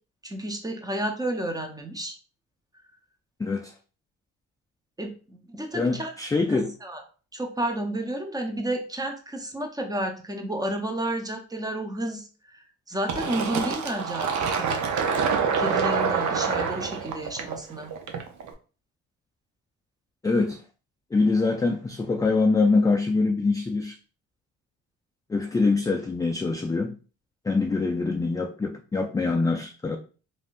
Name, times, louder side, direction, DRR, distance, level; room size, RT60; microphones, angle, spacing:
voice 1, 0.2-2.2 5.0-6.1 6.5-7.0 7.3-14.9 15.6-17.9, right 1 dB, 10° right, 4 dB, 0.7 m, -31 dB
voice 2, 3.4-3.7 5.7-6.7 20.2-20.6 21.1-23.9 25.3-26.9 27.5-30.0, left 3 dB, 10° left, 2 dB, 0.3 m, -24 dB
Fill (with liquid), 13.1-18.5, right 6 dB, 70° right, 0.7 m, -26 dB
3.4 x 2.6 x 2.4 m, 0.37 s
cardioid pair, 90°, 30 cm